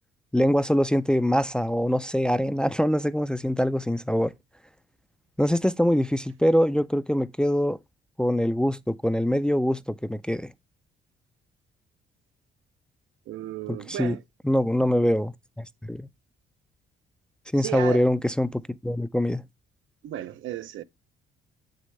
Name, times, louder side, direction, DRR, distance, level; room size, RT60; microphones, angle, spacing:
voice 1, 0.3-4.3 5.4-7.8 8.2-10.5 13.9-14.2 14.4-16.1 17.5-19.4, equal, 5° left, 0.3 m, -24 dB
voice 2, 13.3-14.2 17.6-18.1 20.0-20.8, right 13 dB, 80° right, 0.6 m, -34 dB
7.4 x 6.4 x 3.2 m
cardioid pair, 90°, 20 cm